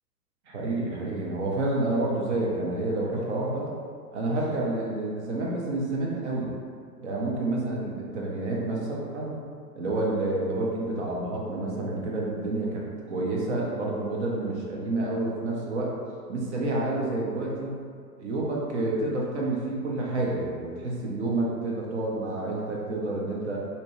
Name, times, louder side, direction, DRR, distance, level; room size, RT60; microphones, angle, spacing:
voice 1, 0.5-3.7 4.1-6.5 7.0-9.4 9.7-15.9 16.3-17.8 18.2-23.6, right 2 dB, 45° right, -3 dB, 0.6 m, -29 dB
2.7 x 2.1 x 3.0 m, 2.2 s
hypercardioid pair, 125°, 48 cm